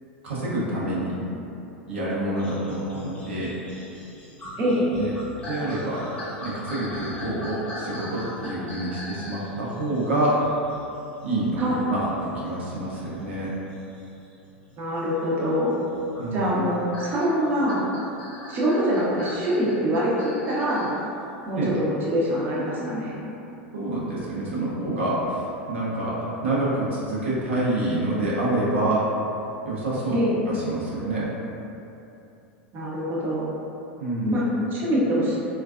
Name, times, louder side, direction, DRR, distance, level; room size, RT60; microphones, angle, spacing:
voice 1, 0.2-1.2 1.9-3.5 5.0-5.1 5.4-6.0 6.4-10.4 11.2-11.6 11.9-13.6 16.2-16.5 21.5-21.7 23.7-29.0 29.6-30.2 30.5-31.3 34.0-34.3, right 1 dB, 80° right, -8 dB, 0.7 m, -27 dB
sound 1, 2.4-14.8 15.4-21.0 21.5-21.6, left 1 dB, 20° left, 0.8 m, -40 dB
voice 2, 4.6-4.9 11.6-11.8 14.8-15.8 16.3-17.8 18.5-20.9 21.5-23.1 30.1-30.3 32.7-33.5 34.2-34.4 34.7-35.4, equal, 35° right, -6 dB, 0.7 m, -24 dB
3.1 x 2.3 x 2.3 m, 2.8 s
hypercardioid pair, 90°, 6 cm